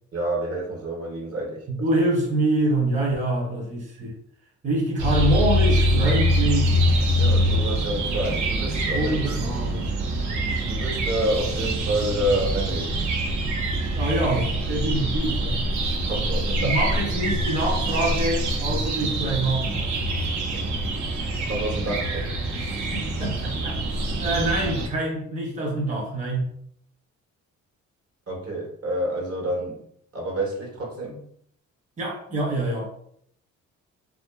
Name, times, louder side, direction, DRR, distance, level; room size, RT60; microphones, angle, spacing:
voice 1, 0.1-1.6 7.2-9.3 10.7-13.0 15.9-16.8 20.5-20.6 21.5-22.3 28.3-29.8 30.1-31.2, right 1 dB, 50° right, -1 dB, 0.9 m, -28 dB
voice 2, 1.7-4.1 4.6-6.9 8.9-9.9 13.9-15.7 16.5-19.9 22.9-26.5 32.0-32.9, right 1 dB, 25° right, -2 dB, 0.7 m, -25 dB
sound 1, 5.0-24.9, right 1 dB, 70° right, 0.6 m, -25 dB
2.6 x 2.5 x 2.2 m, 0.67 s
cardioid pair, 90°, 30 cm